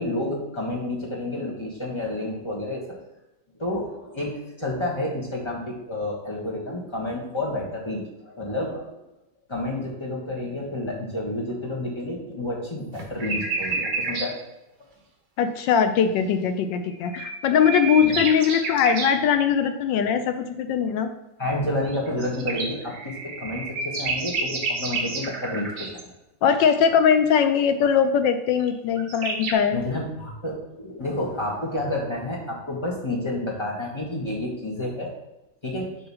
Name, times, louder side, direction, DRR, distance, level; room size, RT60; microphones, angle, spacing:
voice 1, 0.0-2.8 3.6-8.9 9.5-14.3 18.0-18.2 21.4-25.9 29.7-35.1 35.6-35.9, left 1 dB, 15° left, -3 dB, 1.1 m, -30 dB
sound 1, 12.9-14.3 16.9-19.2 21.8-26.0 28.7-28.8 29.0-29.5, right 3 dB, 55° right, 1.6 m, -30 dB
voice 2, 15.4-21.1 26.4-29.8, left 7 dB, 75° left, 8 dB, 1.1 m, -21 dB
7.7 x 3.1 x 5.5 m, 0.95 s
omnidirectional pair, 2.2 m